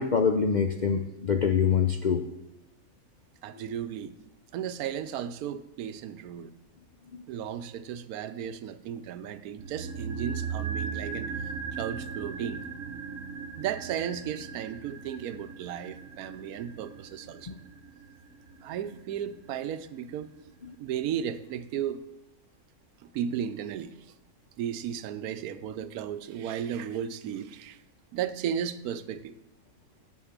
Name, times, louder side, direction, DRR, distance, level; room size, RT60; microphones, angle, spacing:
voice 1, 0.0-2.3 3.5-3.6 7.1-7.2 17.5-17.6 20.6-20.8, left 6 dB, 60° left, 6 dB, 0.4 m, -25 dB
voice 2, 3.4-4.2 4.5-6.5 7.3-11.5 11.8-12.7 13.6-17.6 18.6-20.5 20.8-22.0 23.0-23.9 24.6-27.8 28.1-29.3, right 9 dB, 85° right, 13 dB, 1.1 m, -35 dB
sound 1, 9.6-19.9 20.1-20.2, right 6 dB, 65° right, 1.2 m, -38 dB
8.4 x 7.4 x 7.2 m, 0.93 s
omnidirectional pair, 1.5 m